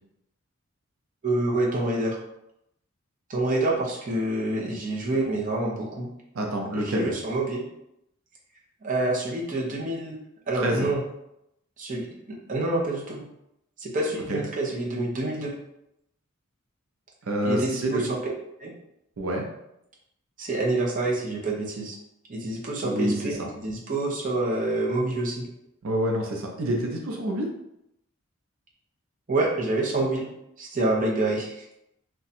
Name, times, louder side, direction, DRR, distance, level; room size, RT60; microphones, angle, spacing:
voice 1, 1.2-2.2 3.3-6.1 6.7-7.6 8.8-10.2 10.5-11.0 11.8-12.1 12.5-13.2 13.8-15.5 17.4-18.3 18.6-18.7 20.4-21.9 22.3-25.5 29.3-30.3 30.6-31.5, right 2 dB, 40° right, -3 dB, 0.7 m, -27 dB
voice 2, 6.3-7.1 10.5-10.9 14.3-14.4 17.2-18.0 19.2-19.5 22.8-23.5 25.8-27.5, right 1 dB, 85° right, 1 dB, 0.6 m, -27 dB
2.7 x 2.3 x 4.1 m, 0.82 s
head